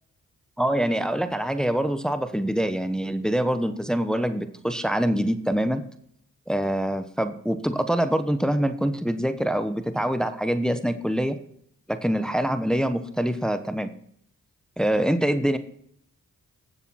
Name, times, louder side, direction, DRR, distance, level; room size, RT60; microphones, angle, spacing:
voice 1, 0.6-5.8 6.5-11.4 11.9-13.9 14.8-15.6, right 1 dB, ahead, 10 dB, 1.1 m, -25 dB
15.5 x 6.9 x 4.2 m, 0.69 s
supercardioid pair, 45°, 35 cm